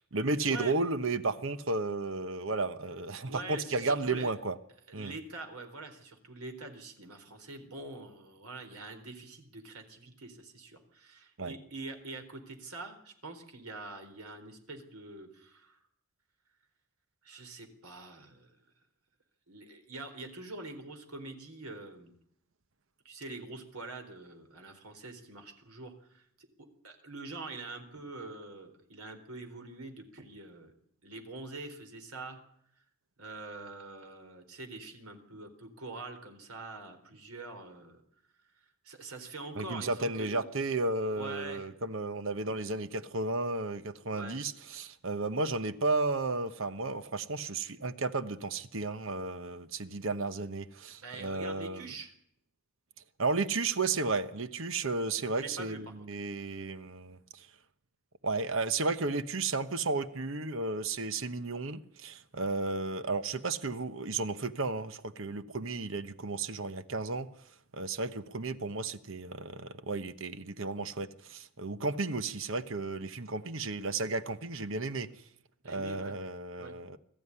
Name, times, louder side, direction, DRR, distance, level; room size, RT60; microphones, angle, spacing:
voice 1, 0.1-4.6 4.9-5.1 11.4-11.5 39.6-51.9 53.2-57.5 58.2-67.3 67.7-75.1 75.6-77.0, right 3 dB, 65° right, 1.1 m, -33 dB
voice 2, 3.3-4.3 4.9-15.8 17.2-18.6 19.5-22.2 23.0-26.5 26.8-30.7 31.0-32.4 33.2-38.0 38.6-40.4 41.1-41.7 44.1-44.4 51.0-52.1 55.4-56.1 75.6-76.1 76.6-76.7, right 2 dB, 90° right, 4.1 m, -45 dB
21.5 x 14.0 x 9.8 m
head